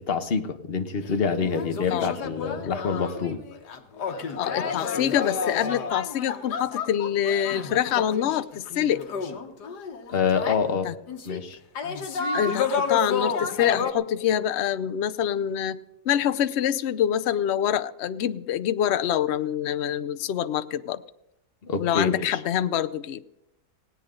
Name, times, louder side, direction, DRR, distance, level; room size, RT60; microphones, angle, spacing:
voice 1, 0.0-3.4 10.1-10.9 11.3-11.6 21.6-22.4, left 5 dB, 40° left, 8 dB, 1.2 m, -26 dB
sound 1, 1.0-1.1 1.4-10.6 11.1-11.4 11.7-13.9, left 5 dB, 85° left, 1.9 m, -31 dB
voice 2, 4.4-9.0 10.8-10.9 12.3-15.8 16.1-21.0 21.8-23.2, left 10 dB, 60° left, 13 dB, 0.7 m, -25 dB
18.5 x 17.5 x 3.8 m, 0.87 s
omnidirectional pair, 1.7 m